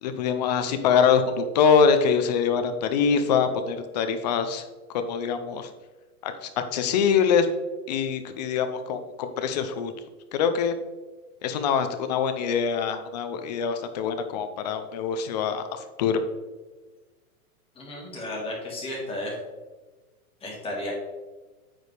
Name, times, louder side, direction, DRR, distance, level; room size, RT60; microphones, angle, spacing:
voice 1, 0.0-4.6 4.9-5.7 6.2-7.5 7.9-9.9 10.3-10.7 11.4-16.2, left 6 dB, 30° left, 8 dB, 0.5 m, -24 dB
voice 2, 17.8-19.3 20.4-20.9, left 1 dB, 10° left, -3 dB, 1.8 m, -33 dB
8.8 x 5.0 x 3.3 m, 1.2 s
hypercardioid pair, 150°, 44 cm